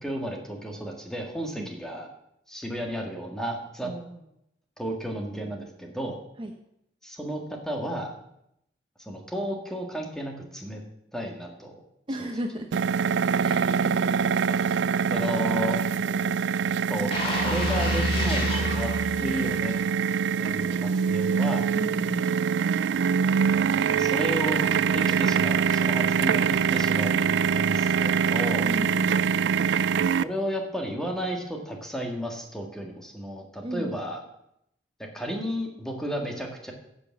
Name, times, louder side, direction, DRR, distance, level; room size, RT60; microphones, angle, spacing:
voice 1, 0.0-2.1 2.5-3.9 4.8-6.2 7.0-8.1 9.0-10.8 11.1-11.8 12.2-12.3 14.5-14.6 15.1-15.8 16.9-17.1 17.4-18.9 19.2-19.7 20.4-21.7 23.7-24.7 24.9-28.7 30.2-34.2 35.0-36.7, equal, 5° left, 1 dB, 1.8 m, -33 dB
voice 2, 3.8-4.2 6.4-6.5 12.1-12.8 13.4-16.6 21.7-22.3 28.6-29.2 33.6-34.0, right 1 dB, 30° right, 4 dB, 0.8 m, -36 dB
sound 1, 12.7-30.2, right 6 dB, 70° right, 0.3 m, -24 dB
sound 2, 17.1-20.1 20.5-20.6, left 1 dB, 30° left, 3.0 m, -29 dB
11.5 x 7.1 x 7.2 m, 0.79 s
head